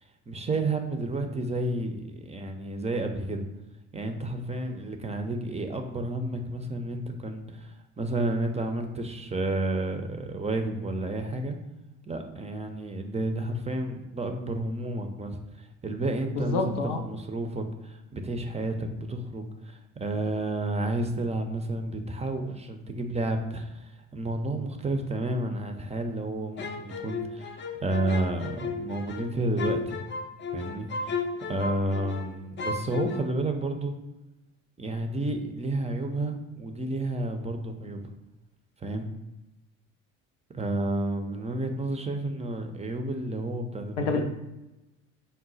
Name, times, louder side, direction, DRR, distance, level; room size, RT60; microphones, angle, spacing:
voice 1, 0.3-3.5 3.9-11.5 12.1-30.0 30.5-33.9 34.8-38.1 38.8-39.1 40.5-44.2, right 2 dB, 20° right, 5 dB, 0.5 m, -31 dB
voice 2, 16.3-17.0 44.0-44.2, left 4 dB, 90° left, 4 dB, 0.6 m, -27 dB
sound 1, 26.6-32.3 32.6-33.2, left 4 dB, 30° left, 0.5 m, -34 dB
3.9 x 2.1 x 3.9 m, 0.98 s
hypercardioid pair, 65°, 36 cm